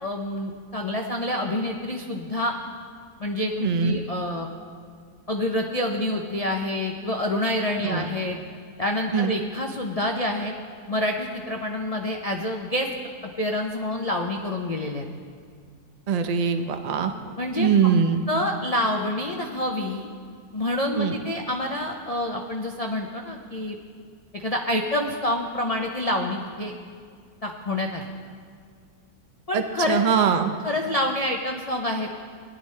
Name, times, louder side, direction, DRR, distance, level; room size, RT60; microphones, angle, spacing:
voice 1, 0.0-2.5 3.2-4.5 5.3-8.4 8.8-10.5 10.9-12.9 13.2-15.0 17.4-17.7 18.3-20.1 20.5-23.8 24.3-26.7 27.4-28.1 29.5-30.0 30.6-32.1, left 1 dB, 50° left, 2 dB, 0.4 m, -27 dB
voice 2, 3.6-4.0 7.8-8.1 9.1-9.3 16.1-17.1 17.6-18.2 20.9-21.2 29.5-30.5, right 6 dB, 75° right, 8 dB, 0.3 m, -22 dB
18.0 x 11.0 x 3.3 m, 2.2 s
omnidirectional pair, 1.7 m